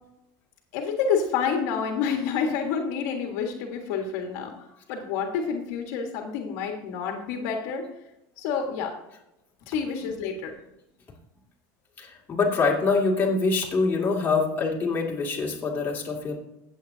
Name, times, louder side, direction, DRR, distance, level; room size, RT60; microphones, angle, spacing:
voice 1, 0.7-4.5 4.9-7.8 8.4-8.9 9.7-10.5, left 6 dB, 70° left, 2 dB, 1.6 m, -28 dB
voice 2, 12.0-16.3, left 4 dB, 20° left, -3 dB, 2.4 m, -25 dB
15.5 x 8.1 x 2.8 m, 0.89 s
supercardioid pair, 140°, 9 cm